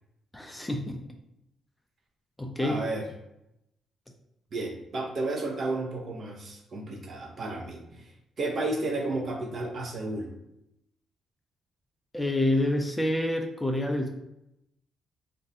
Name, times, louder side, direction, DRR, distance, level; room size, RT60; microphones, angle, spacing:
voice 1, 0.3-1.0 2.4-2.8 12.1-14.1, left 1 dB, 10° left, 3 dB, 0.4 m, -27 dB
voice 2, 2.6-3.1 4.5-8.1 8.4-10.3, right 2 dB, 45° right, 2 dB, 0.6 m, -32 dB
2.6 x 2.2 x 3.6 m, 0.84 s
cardioid pair, 90°, 0 cm